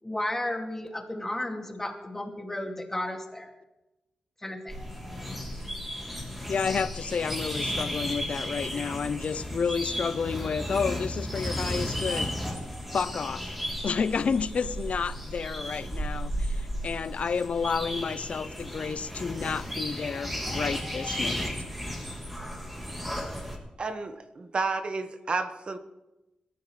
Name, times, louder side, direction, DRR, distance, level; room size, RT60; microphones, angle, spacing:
voice 1, 0.0-3.5 4.4-4.9, left 1 dB, 15° left, 2 dB, 2.2 m, -33 dB
sound 1, 4.7-23.6, equal, 5° right, 3.2 m, -34 dB
voice 2, 6.5-12.3 12.9-13.4 13.8-21.5, left 6 dB, 60° left, 15 dB, 0.6 m, -30 dB
voice 3, 23.8-25.8, right 3 dB, 45° right, 8 dB, 1.3 m, -31 dB
22.0 x 13.5 x 3.2 m, 0.99 s
wide cardioid pair, 90°, 2 cm